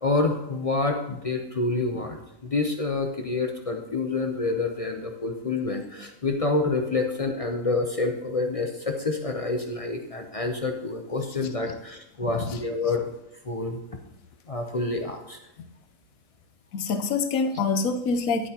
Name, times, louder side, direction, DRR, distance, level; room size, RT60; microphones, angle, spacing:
voice 1, 0.0-13.0 13.4-13.8 14.5-15.4, left 3 dB, 45° left, 3 dB, 0.4 m, -28 dB
voice 2, 16.7-18.5, left 4 dB, 70° left, 7 dB, 1.2 m, -25 dB
10.0 x 8.9 x 2.9 m, 0.91 s
omnidirectional pair, 1.6 m